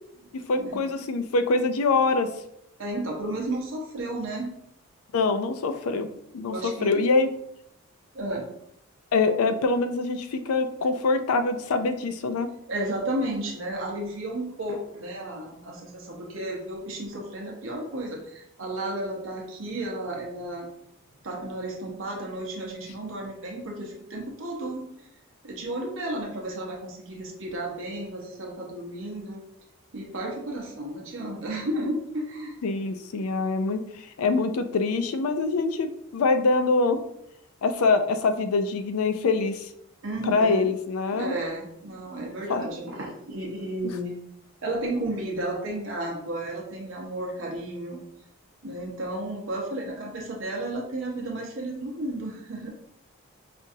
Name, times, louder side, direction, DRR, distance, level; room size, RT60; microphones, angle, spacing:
voice 1, 0.3-2.3 5.1-6.1 6.3-7.3 9.1-12.5 32.6-37.0 37.6-39.7 40.2-41.4 42.5-42.7, left 3 dB, 80° left, 9 dB, 0.4 m, -24 dB
voice 2, 2.8-4.6 6.5-7.0 8.1-8.5 12.7-20.7 21.2-24.9 25.4-29.4 29.9-32.6 40.0-40.7 41.1-44.2 44.6-48.0 48.6-52.7, right 1 dB, 60° right, 0 dB, 0.9 m, -33 dB
5.4 x 2.5 x 2.7 m, 0.76 s
head